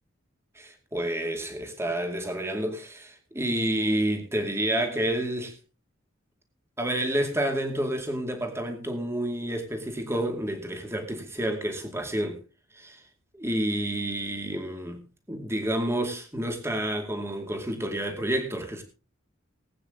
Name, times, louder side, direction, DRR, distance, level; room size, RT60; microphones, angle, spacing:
voice 1, 0.6-5.6 6.8-12.4 12.7-13.0 13.3-18.8, right 1 dB, 15° right, 2.4 m, -29 dB
20.0 x 9.2 x 3.8 m
head